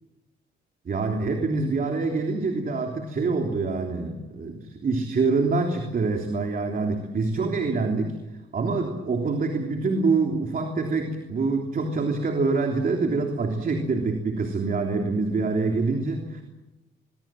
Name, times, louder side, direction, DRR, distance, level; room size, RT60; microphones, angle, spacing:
voice 1, 0.8-8.1 8.5-16.4, right 3 dB, 45° right, 3 dB, 3.4 m, -25 dB
23.0 x 22.5 x 7.7 m, 1.1 s
cardioid pair, 90°, 20 cm